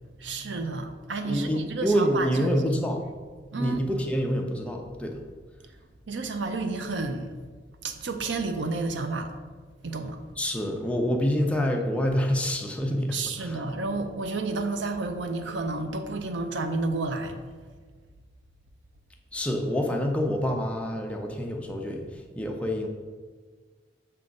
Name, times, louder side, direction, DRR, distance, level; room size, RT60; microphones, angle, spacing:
voice 1, 0.2-2.9 3.5-3.8 6.1-7.3 7.8-9.3 9.8-10.2 13.1-17.4, right 3 dB, 85° right, 7 dB, 0.6 m, -31 dB
voice 2, 1.2-3.0 3.6-5.2 10.4-13.7 19.3-22.9, equal, 5° left, 1 dB, 0.6 m, -27 dB
6.8 x 3.6 x 5.2 m, 1.5 s
head